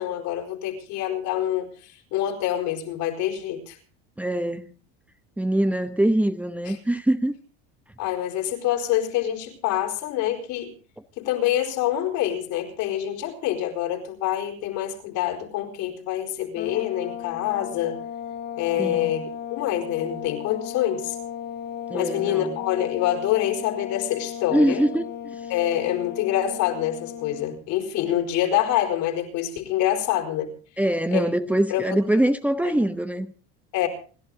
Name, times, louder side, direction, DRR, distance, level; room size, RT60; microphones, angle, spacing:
voice 1, 0.0-3.8 6.6-6.8 8.0-10.7 11.2-18.0 18.6-21.2 21.9-24.8 25.5-30.5 31.1-31.3 31.7-32.0 33.7-33.9, left 12 dB, 65° left, 4.8 m, -26 dB
voice 2, 4.2-4.6 5.4-7.4 18.8-19.1 21.9-22.6 24.5-25.4 30.8-33.3, right 1 dB, 5° right, 1.0 m, -23 dB
sound 1, 16.6-27.6, left 9 dB, 30° left, 1.5 m, -36 dB
29.0 x 11.5 x 3.8 m
supercardioid pair, 105°, 32 cm